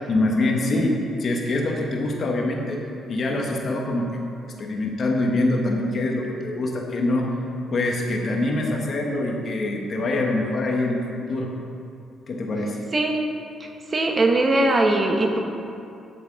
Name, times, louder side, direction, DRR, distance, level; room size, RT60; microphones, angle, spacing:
voice 1, 0.1-2.8 3.1-4.1 4.6-7.3 7.7-11.0 11.3-11.5 12.3-12.8, left 2 dB, 50° left, 0 dB, 1.1 m, -24 dB
voice 2, 13.6-15.4, right 2 dB, 30° right, 2 dB, 1.2 m, -21 dB
9.8 x 7.8 x 3.7 m, 2.6 s
cardioid pair, 90°, 0 cm